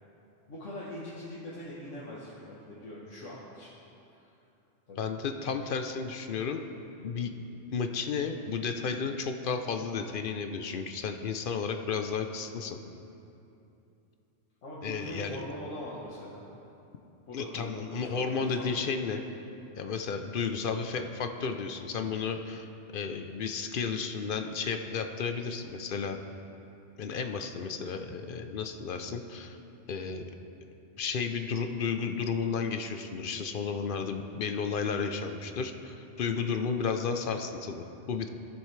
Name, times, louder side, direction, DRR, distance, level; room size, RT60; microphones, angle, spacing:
voice 1, 0.5-3.7 4.1-4.3 4.9-5.1 14.6-16.4 17.3-18.9, left 1 dB, 80° left, -7 dB, 1.5 m, -42 dB
voice 2, 5.0-6.6 7.0-7.3 7.7-12.8 14.8-15.4 17.3-19.2 19.8-26.2 27.0-29.6 29.9-30.2 31.0-38.3, left 5 dB, 55° left, 6 dB, 0.7 m, -33 dB
15.5 x 7.2 x 3.2 m, 2.8 s
omnidirectional pair, 1.3 m